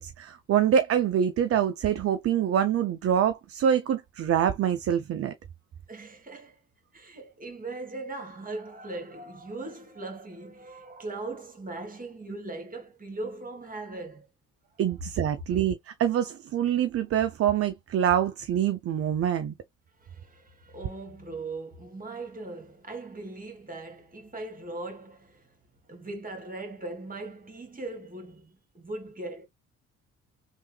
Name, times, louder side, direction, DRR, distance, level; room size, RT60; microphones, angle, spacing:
voice 1, 0.0-5.3 14.8-19.5, right 9 dB, 40° right, 0.5 m, -25 dB
voice 2, 5.9-6.6 6.9-14.2 20.0-25.5 25.9-29.5, right 2 dB, 20° right, 1.7 m, -39 dB
3.3 x 2.6 x 3.2 m
hypercardioid pair, 55°, 37 cm